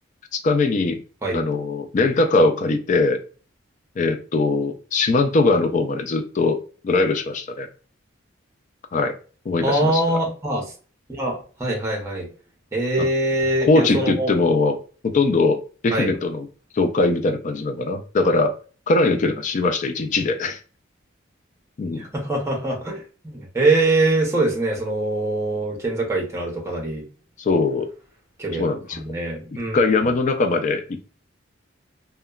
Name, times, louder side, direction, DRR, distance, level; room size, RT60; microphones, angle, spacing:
voice 1, 0.3-1.0 1.3-3.2 4.0-7.7 8.9-9.2 9.5-10.2 13.0-13.1 13.6-16.5 16.7-18.5 18.9-20.6 21.8-22.0 27.4-27.9 28.6-29.1 29.7-31.1, left 3 dB, 40° left, 0.3 m, -21 dB
voice 2, 9.6-10.7 11.1-12.3 12.7-14.3 15.9-16.1 22.0-23.0 23.2-27.0 28.4-28.6 28.9-29.8, right 2 dB, 15° right, 0.7 m, -23 dB
2.8 x 2.2 x 2.3 m
head